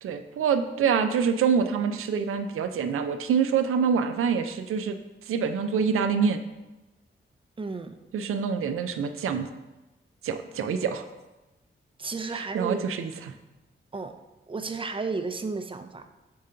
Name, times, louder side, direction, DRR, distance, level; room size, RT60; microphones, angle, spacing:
voice 1, 0.0-5.0 5.3-6.4 8.1-9.5 10.2-11.0 12.3-13.1, right 6 dB, 90° right, 8 dB, 0.5 m, -26 dB
voice 2, 7.6-8.0 12.0-12.8 13.9-14.1 14.5-16.1, right 4 dB, 25° right, 7 dB, 0.5 m, -32 dB
4.7 x 3.7 x 5.5 m, 1.0 s
cardioid pair, 75°, 21 cm